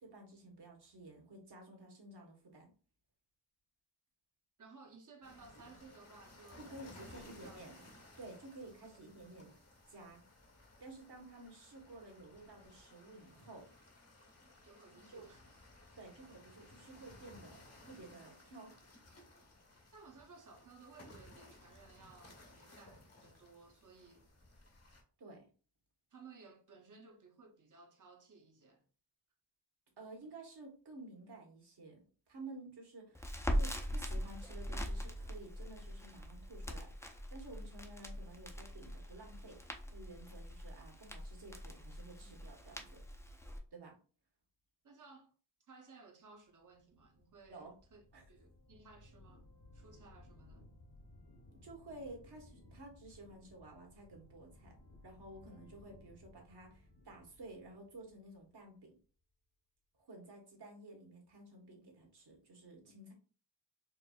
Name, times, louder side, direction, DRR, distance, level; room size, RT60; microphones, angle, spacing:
voice 1, 0.0-2.7 6.6-7.8 8.2-9.5 9.9-10.2 10.8-13.7 14.9-15.3 16.0-17.6 17.8-18.7 25.2-25.5 30.0-33.3 33.6-36.9 37.3-39.6 39.9-43.0 43.7-44.0 47.5-47.7 48.1-48.2 51.6-54.7 55.0-58.9 60.0-63.1, right 2 dB, 65° right, 1.4 m, -53 dB
voice 2, 4.6-7.6 8.8-8.9 14.6-15.6 19.9-24.3 26.1-28.8 42.2-42.4 44.8-45.3 45.7-48.0 48.3-49.5 49.7-50.7, right 4 dB, 45° right, 0.9 m, -59 dB
sound 1, 5.2-25.0, left 2 dB, 35° left, 0.9 m, -59 dB
Crackle, 33.2-43.6, equal, 5° left, 0.5 m, -42 dB
sound 2, 46.7-58.8, left 1 dB, 60° left, 1.3 m, -61 dB
4.6 x 2.6 x 2.3 m
wide cardioid pair, 90°, 43 cm